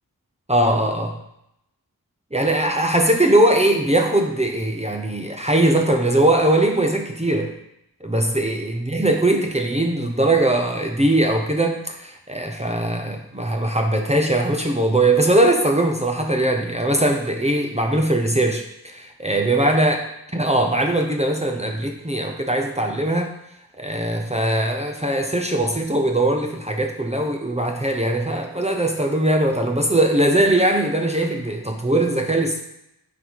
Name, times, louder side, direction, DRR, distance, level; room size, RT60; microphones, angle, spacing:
voice 1, 0.5-1.2 2.3-7.5 8.0-20.0 20.3-23.3 23.8-32.6, right 1 dB, 20° right, 3 dB, 0.8 m, -20 dB
8.5 x 4.1 x 4.7 m, 0.80 s
wide cardioid pair, 65°, 37 cm